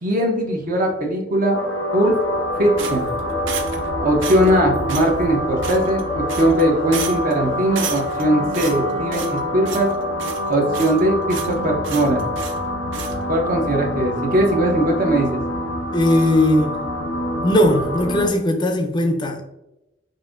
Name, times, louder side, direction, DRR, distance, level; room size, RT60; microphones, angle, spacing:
voice 1, 0.0-1.6 1.9-2.2 2.6-3.1 4.0-9.9 10.5-12.3 13.3-15.4, right 1 dB, 45° right, 0.7 m, -20 dB
sound 1, 1.5-18.3, equal, 90° left, 0.6 m, -26 dB
sound 2, 2.8-3.9 4.2-4.6 4.9-5.1 5.6-6.0 6.3-6.6 6.9-7.3 7.7-8.2 8.5-9.4 9.6-9.9 10.2-11.0 11.3-11.5 11.8-12.6 12.9-13.2, right 7 dB, 70° right, 0.4 m, -31 dB
Wind instrument woodwind instrument, 3.1-11.1, equal, 25° right, 1.1 m, -41 dB
voice 2, 15.9-16.8 17.4-19.4, left 1 dB, 25° left, 0.5 m, -18 dB
5.3 x 2.5 x 2.5 m
head